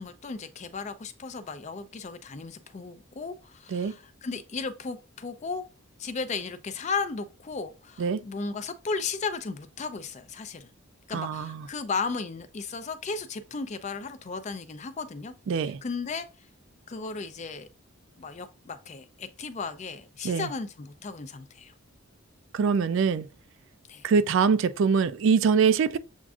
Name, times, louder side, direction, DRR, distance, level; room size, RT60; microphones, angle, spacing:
voice 1, 0.0-5.6 6.0-10.7 11.1-15.3 15.6-16.3 16.9-17.7 18.2-21.7 23.9-24.1, left 4 dB, 35° left, 0.4 m, -35 dB
voice 2, 11.1-11.7 15.5-15.8 20.2-20.5 22.5-23.3 24.0-26.0, right 5 dB, 60° right, 0.3 m, -24 dB
7.2 x 2.5 x 2.4 m
head